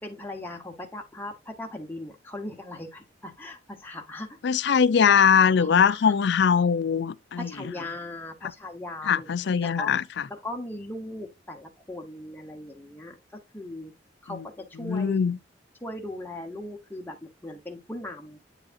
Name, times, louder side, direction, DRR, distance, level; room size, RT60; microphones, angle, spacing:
voice 1, 0.0-4.4 5.6-6.1 7.4-9.3 9.6-9.9 10.3-13.2 13.5-13.9 14.2-15.2 15.8-18.4, left 1 dB, 10° left, 1.0 m, -38 dB
voice 2, 4.4-7.5 8.4-8.5 9.1-10.0 14.3-14.5 14.8-15.4, left 7 dB, 70° left, 0.4 m, -21 dB
8.9 x 4.7 x 2.6 m
head